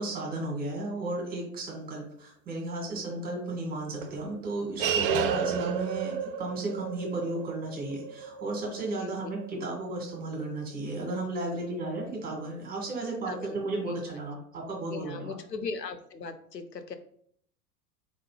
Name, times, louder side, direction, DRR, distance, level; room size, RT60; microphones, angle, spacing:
voice 1, 0.0-15.4, right 2 dB, 20° right, -1 dB, 2.0 m, -34 dB
sound 1, 4.0-10.8, right 7 dB, 40° right, 0.4 m, -33 dB
voice 2, 9.0-9.3 11.5-11.8 13.3-14.0 14.9-17.0, left 4 dB, 85° left, 9 dB, 0.7 m, -39 dB
4.2 x 3.8 x 3.1 m, 0.63 s
figure-of-eight pair, 85°, 48 cm